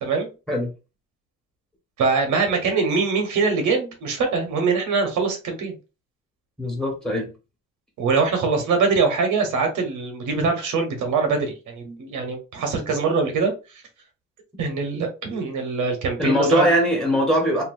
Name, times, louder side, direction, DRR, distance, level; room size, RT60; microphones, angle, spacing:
voice 1, 2.0-5.7 8.0-13.5 14.6-16.7, right 4 dB, 80° right, 4 dB, 1.2 m, -23 dB
voice 2, 6.6-7.3 16.2-17.6, equal, ahead, 0 dB, 1.4 m, -21 dB
2.9 x 2.6 x 2.6 m, 0.30 s
cardioid pair, 90°, 30 cm